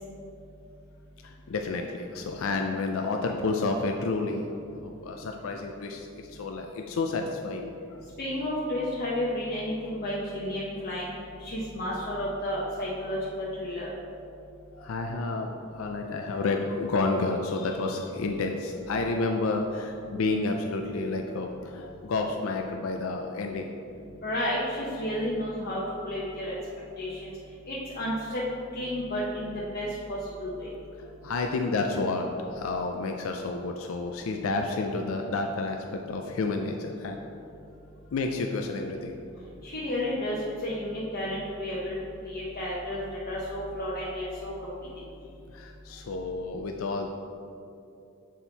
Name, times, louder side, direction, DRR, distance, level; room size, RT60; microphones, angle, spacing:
voice 1, 1.2-4.5 4.8-8.0 14.7-15.5 15.8-23.7 31.0-37.2 38.1-39.2 44.3-44.4 45.5-47.1, left 3 dB, 85° left, 3 dB, 0.4 m, -30 dB
voice 2, 8.2-11.1 11.4-13.9 24.2-25.8 26.1-26.5 27.0-27.2 27.7-28.4 28.7-30.7 39.6-40.3 40.6-42.0 42.3-45.0, left 1 dB, 50° left, -7 dB, 0.9 m, -32 dB
7.3 x 4.4 x 4.0 m, 2.6 s
head